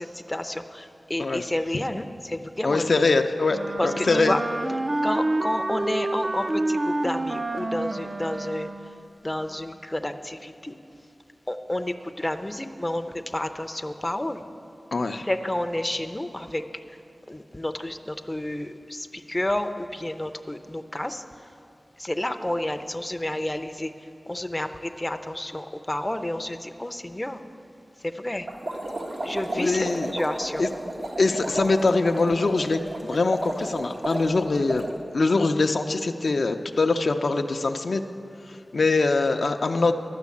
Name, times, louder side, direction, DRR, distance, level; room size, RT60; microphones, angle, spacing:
voice 1, 0.0-3.1 3.8-4.4 5.0-8.9 9.2-10.8 11.5-14.4 15.2-17.0 17.3-21.5 22.0-23.9 24.3-27.4 28.0-28.5 29.2-30.6, left 1 dB, 15° left, 7 dB, 0.5 m, -30 dB
voice 2, 2.6-3.6 3.8-4.4 14.9-15.2 29.5-30.1 30.6-30.7 31.2-38.0 38.7-39.9, left 3 dB, 70° left, 6 dB, 0.4 m, -23 dB
Wind instrument woodwind instrument, 3.5-9.0, right 2 dB, 45° right, 0.4 m, -28 dB
sound 1, 28.5-34.9, right 1 dB, 80° right, 1.3 m, -33 dB
11.5 x 6.3 x 8.3 m, 2.5 s
wide cardioid pair, 85°, 0 cm